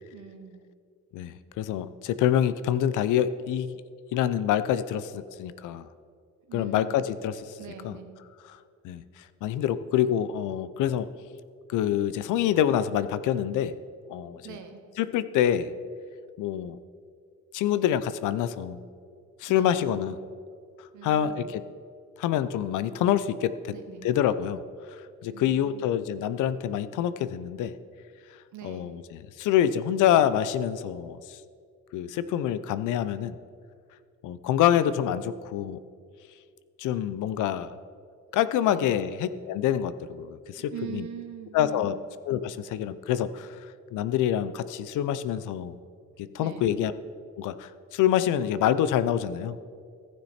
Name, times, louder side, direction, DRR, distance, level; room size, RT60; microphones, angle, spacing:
voice 1, 0.1-0.7 6.5-7.0 7.6-8.1 14.4-14.9 19.5-19.8 20.9-21.5 23.7-24.1 25.3-25.9 28.5-29.0 38.6-38.9 40.7-41.9 46.4-46.8, right 9 dB, 75° right, 6 dB, 1.2 m, -42 dB
voice 2, 1.1-3.8 4.1-5.9 6.5-7.4 7.8-8.0 8.8-9.0 9.4-11.1 11.7-13.7 14.1-14.6 15.0-15.7 16.4-16.8 17.5-18.8 19.4-20.2 21.0-21.6 22.2-23.7 24.0-24.6 25.2-27.7 28.6-31.4 31.9-33.4 34.2-35.8 36.8-37.7 38.3-41.1 41.5-42.0 42.3-43.6 43.9-45.7 46.2-46.9 47.4-49.6, left 10 dB, 85° left, 14 dB, 0.5 m, -26 dB
14.5 x 6.5 x 4.2 m, 2.2 s
cardioid pair, 90°, 30 cm